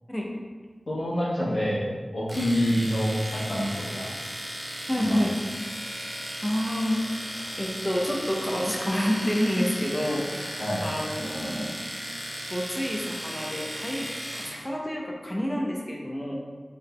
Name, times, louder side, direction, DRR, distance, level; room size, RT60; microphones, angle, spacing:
voice 1, 0.9-4.1 5.0-5.2 10.6-10.8, equal, 70° left, -9 dB, 1.2 m, -27 dB
Domestic sounds home sounds, 2.3-14.6, equal, 15° right, 0.9 m, -36 dB
voice 2, 4.9-5.3 6.4-11.7 12.5-14.1 14.3-16.4, equal, 15° left, -1 dB, 0.7 m, -28 dB
4.4 x 3.5 x 2.2 m, 1.5 s
wide cardioid pair, 50°, 0 cm